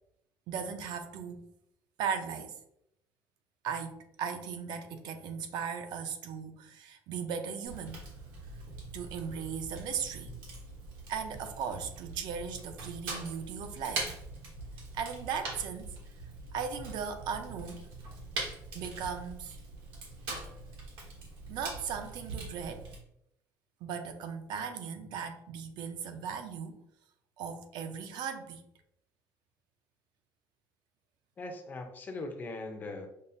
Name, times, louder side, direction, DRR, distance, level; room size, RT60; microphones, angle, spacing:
voice 1, 0.5-1.5 2.0-2.6 3.6-8.1 8.9-10.3 11.1-14.1 14.9-16.0 16.5-17.9 18.7-19.6 21.5-22.9 23.8-26.8 27.4-28.6, right 6 dB, 65° right, 7 dB, 0.4 m, -37 dB
Fire, 7.7-23.0, right 3 dB, 85° right, 1.1 m, -43 dB
voice 2, 31.4-33.1, left 2 dB, 25° left, 5 dB, 0.4 m, -40 dB
5.4 x 2.0 x 2.5 m, 0.76 s
cardioid pair, 175°, 8 cm